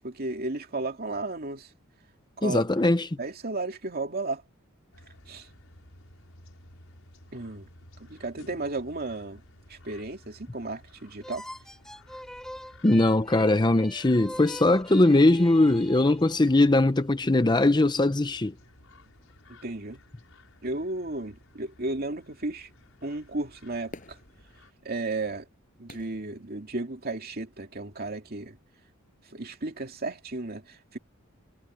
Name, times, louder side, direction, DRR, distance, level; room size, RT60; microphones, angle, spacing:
voice 1, 0.0-1.7 2.4-2.6 3.2-4.4 5.3-5.5 7.3-7.7 8.0-9.4 9.7-11.5 19.6-20.0 20.6-22.7 23.0-24.2 24.8-25.5 25.8-28.6 29.3-31.0, right 2 dB, 50° right, 2.5 m, -34 dB
voice 2, 2.4-3.1 12.8-18.5, left 2 dB, 20° left, 0.7 m, -21 dB
sound 1, 4.9-24.7, left 1 dB, 75° left, 6.6 m, -55 dB
sound 2, 11.2-16.7, equal, 5° left, 3.2 m, -44 dB
Fireworks, 23.9-27.2 27.8-27.9, left 2 dB, 40° left, 6.7 m, -50 dB
head